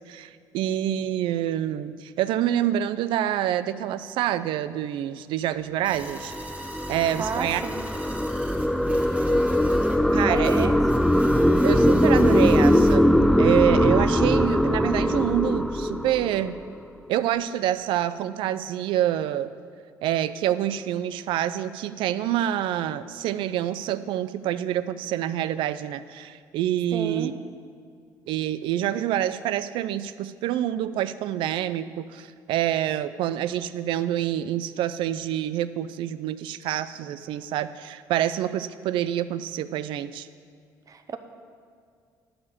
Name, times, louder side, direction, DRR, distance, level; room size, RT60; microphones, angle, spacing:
voice 1, 0.1-6.3 6.9-7.6 10.1-10.7 11.6-16.6 17.1-19.5 20.0-27.3 28.3-40.3, right 11 dB, 75° right, 14 dB, 0.4 m, -27 dB
sound 1, 5.8-13.0, right 1 dB, 15° right, 1.4 m, -41 dB
sound 2, 6.1-16.7, equal, 5° left, 0.4 m, -21 dB
voice 2, 7.2-7.9 10.3-11.1 26.9-27.3 40.9-41.2, right 5 dB, 45° right, 8 dB, 0.9 m, -32 dB
11.0 x 5.1 x 8.2 m, 2.2 s
supercardioid pair, 75°, 9 cm